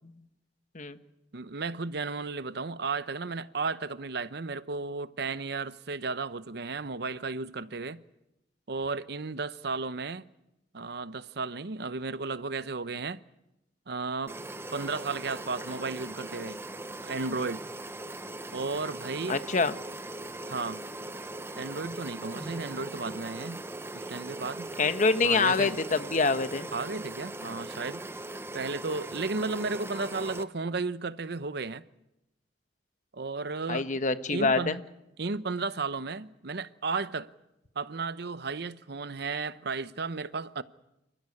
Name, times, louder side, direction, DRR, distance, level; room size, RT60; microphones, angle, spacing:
voice 1, 1.3-8.0 8.7-10.3 10.7-13.2 13.9-14.4 14.7-16.6 17.0-17.6 18.5-19.4 20.5-20.8 21.6-23.6 23.9-24.7 25.2-25.8 26.7-28.0 28.5-31.8 33.1-33.9 34.3-34.8 35.2-37.3 37.8-40.6, right 4 dB, 65° right, 0.8 m, -34 dB
sound 1, 14.3-30.4, right 2 dB, 15° right, 0.8 m, -40 dB
voice 2, 19.3-19.7 24.8-26.7 33.7-34.8, left 4 dB, 45° left, 1.2 m, -25 dB
28.5 x 14.5 x 9.7 m
head